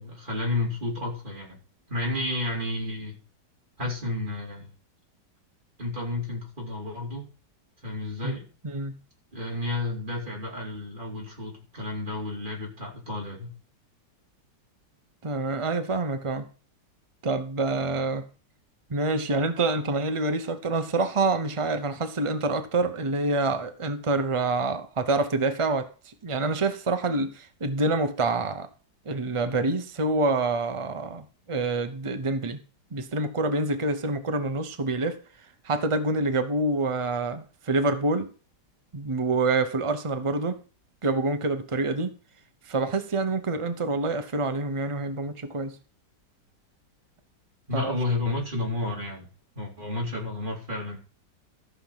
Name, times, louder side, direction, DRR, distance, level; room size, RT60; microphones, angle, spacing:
voice 1, 0.0-1.6 1.9-3.2 3.8-4.7 5.8-7.3 7.8-8.5 9.3-13.5 47.7-49.3 49.5-51.0, left 2 dB, 25° right, -2 dB, 3.9 m, -31 dB
voice 2, 8.6-9.0 15.2-16.5 17.2-18.3 18.9-28.7 29.1-32.6 32.9-35.2 35.6-38.3 38.9-40.6 41.0-42.1 42.6-45.8 47.7-47.9, right 3 dB, 45° right, 8 dB, 0.4 m, -27 dB
14.0 x 6.0 x 5.7 m, 0.37 s
omnidirectional pair, 2.0 m